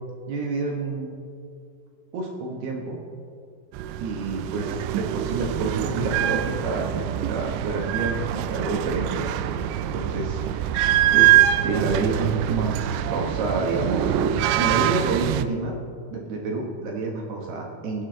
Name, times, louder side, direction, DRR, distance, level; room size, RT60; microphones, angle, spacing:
voice 1, 0.3-1.1 2.1-3.0 4.0-9.6 9.9-10.8 11.1-15.7 16.1-18.1, right 3 dB, 70° right, 0 dB, 2.8 m, -29 dB
sound 1, 3.7-15.4, right 12 dB, 90° right, 2.4 m, -24 dB
23.0 x 7.9 x 3.8 m, 2.3 s
omnidirectional pair, 5.5 m